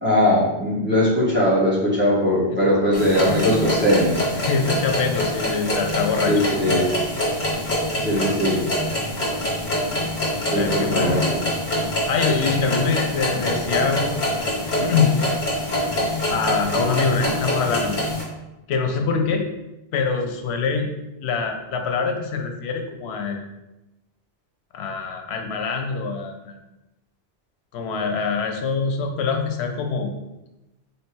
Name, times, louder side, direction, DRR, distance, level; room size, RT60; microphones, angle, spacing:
voice 1, 0.0-4.2 6.3-6.9 8.0-8.6 10.5-11.5, equal, 10° right, -7 dB, 1.1 m, -20 dB
sound 1, 2.9-18.2, left 1 dB, 45° left, 1.4 m, -25 dB
voice 2, 4.4-6.4 10.5-11.2 12.1-14.3 14.8-15.1 16.3-17.9 18.7-19.4 19.9-20.9 21.2-23.4 24.7-26.5 27.7-30.1, left 5 dB, 85° left, 4 dB, 0.8 m, -24 dB
3.3 x 2.8 x 4.4 m, 0.98 s
omnidirectional pair, 1.1 m